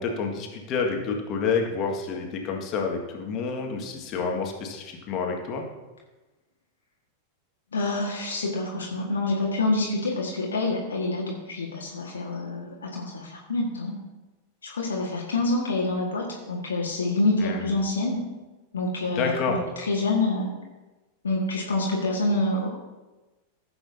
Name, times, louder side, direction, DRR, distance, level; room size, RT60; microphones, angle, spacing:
voice 1, 0.0-5.6 17.4-17.7 19.2-19.6, left 5 dB, 35° left, 2 dB, 1.9 m, -28 dB
voice 2, 7.7-13.9 14.6-18.2 18.7-20.5 21.2-22.7, left 2 dB, 70° left, -2 dB, 1.7 m, -27 dB
15.5 x 7.9 x 2.8 m, 1.1 s
figure-of-eight pair, 90°, 0 cm